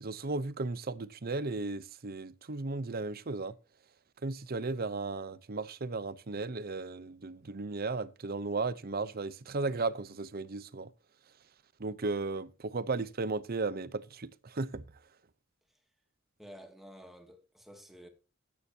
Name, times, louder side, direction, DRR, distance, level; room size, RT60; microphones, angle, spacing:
voice 1, 0.0-3.5 4.2-10.9 11.8-14.8, right 3 dB, 50° right, 0.8 m, -35 dB
voice 2, 16.4-18.1, equal, ahead, 2.3 m, -51 dB
14.0 x 9.6 x 2.8 m
head